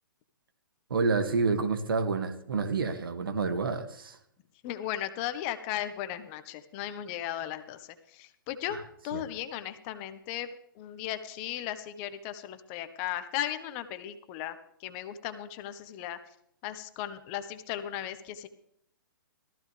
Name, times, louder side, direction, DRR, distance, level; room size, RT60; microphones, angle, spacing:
voice 1, 0.9-4.2 8.7-8.8 9.1-9.2, right 4 dB, 85° right, 7 dB, 2.2 m, -29 dB
voice 2, 4.6-8.8 9.0-10.5 10.7-16.2 16.6-18.5, left 12 dB, 30° left, 10 dB, 1.3 m, -36 dB
17.5 x 15.0 x 3.4 m, 0.70 s
hypercardioid pair, 150°, 11 cm